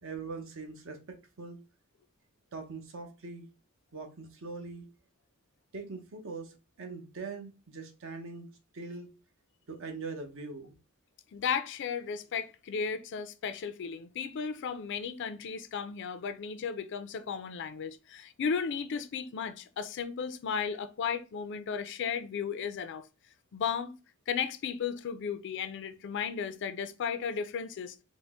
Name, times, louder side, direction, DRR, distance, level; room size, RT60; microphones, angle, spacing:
voice 1, 0.0-1.6 2.5-3.5 3.9-4.8 5.7-8.5 8.7-9.1 9.7-10.7, right 4 dB, 65° right, 0.8 m, -42 dB
voice 2, 11.3-23.0 23.5-23.9 24.3-27.9, left 6 dB, 60° left, 0.4 m, -35 dB
3.8 x 2.0 x 3.5 m
head